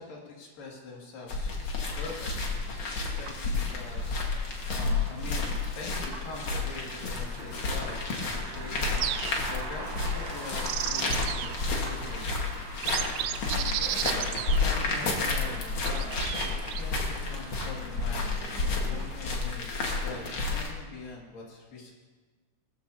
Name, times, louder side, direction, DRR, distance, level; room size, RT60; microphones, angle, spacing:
voice 1, 0.0-1.6 2.0-4.3 4.7-8.1 8.3-12.4 13.1-21.9, left 3 dB, 90° left, -3 dB, 3.9 m, -43 dB
sound 1, 1.3-20.7, left 3 dB, 45° left, 2.0 m, -31 dB
sound 2, 1.9-19.1, right 3 dB, 55° right, 2.1 m, -44 dB
sound 3, 9.0-9.6 10.4-11.6 12.2-12.3 12.7-15.1 15.9-16.8, right 12 dB, 85° right, 2.2 m, -33 dB
19.5 x 14.0 x 2.8 m, 1.4 s
omnidirectional pair, 3.8 m